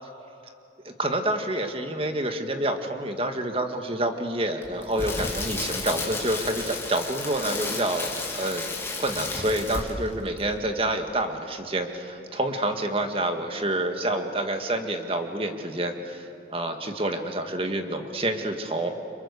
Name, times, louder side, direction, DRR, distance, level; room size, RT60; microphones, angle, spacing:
voice 1, 0.8-8.7 9.0-18.9, right 1 dB, 30° right, 5 dB, 1.9 m, -28 dB
Crackle, 4.6-10.1 10.4-10.6, left 3 dB, 15° left, 3.4 m, -32 dB
30.0 x 26.5 x 6.9 m, 2.9 s
head